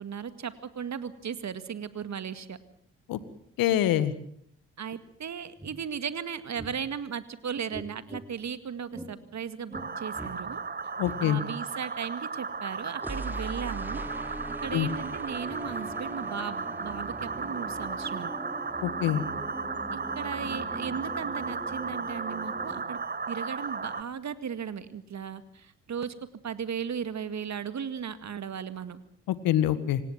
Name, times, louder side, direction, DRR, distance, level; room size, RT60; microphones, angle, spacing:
voice 1, 0.0-2.6 4.8-10.6 11.2-14.0 14.6-18.3 19.9-26.1 26.4-29.0, right 7 dB, 50° right, 12 dB, 2.1 m, -36 dB
voice 2, 3.6-4.1 11.0-11.4 14.7-14.9 18.8-19.2 29.3-30.0, left 12 dB, 70° left, 14 dB, 1.8 m, -25 dB
sound 1, 5.1-5.2 5.6-5.7 6.5-6.7 7.7-8.3 8.9-9.1 9.7-9.9 10.1-10.4 11.0-11.2 13.0-22.8, right 1 dB, 5° right, 4.2 m, -41 dB
sound 2, 9.7-24.0, right 4 dB, 25° right, 1.4 m, -35 dB
26.5 x 17.5 x 7.5 m, 0.67 s
hypercardioid pair, 45°, 36 cm